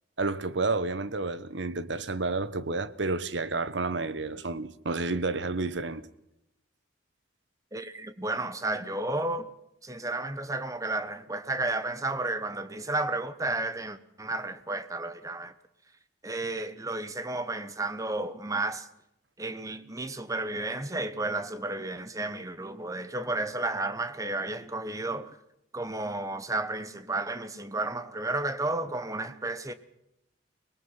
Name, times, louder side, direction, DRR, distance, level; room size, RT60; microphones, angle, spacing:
voice 1, 0.2-6.1, right 3 dB, 75° right, 1.1 m, -30 dB
voice 2, 7.7-9.5 9.8-15.5 16.2-18.9 19.4-25.4 25.7-29.7, right 2 dB, 15° right, 1.1 m, -32 dB
24.5 x 20.0 x 5.8 m
head